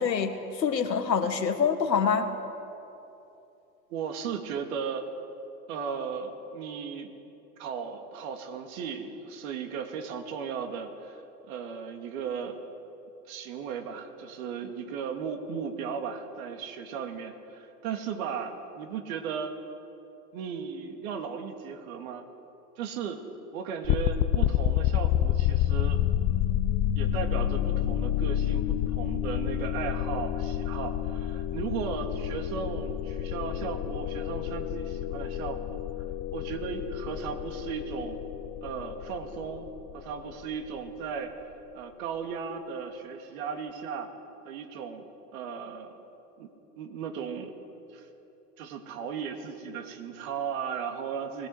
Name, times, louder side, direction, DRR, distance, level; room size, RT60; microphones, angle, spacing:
voice 1, 0.0-2.3, left 6 dB, 90° left, 6 dB, 2.0 m, -26 dB
voice 2, 3.9-5.1 5.7-7.1 7.6-11.2 11.5-12.6 13.3-19.5 20.3-22.3 22.8-23.2 23.5-26.0 27.0-35.8 36.3-38.2 38.6-39.7 39.9-41.3 41.7-44.1 44.4-45.0 45.3-45.9 46.4-46.5 46.8-47.5 47.9-48.1 48.6-51.5, right 6 dB, 55° right, 5 dB, 2.7 m, -36 dB
sound 1, 23.8-40.8, left 11 dB, 35° left, 0.8 m, -29 dB
20.5 x 17.0 x 8.1 m, 2.9 s
hypercardioid pair, 105°, 49 cm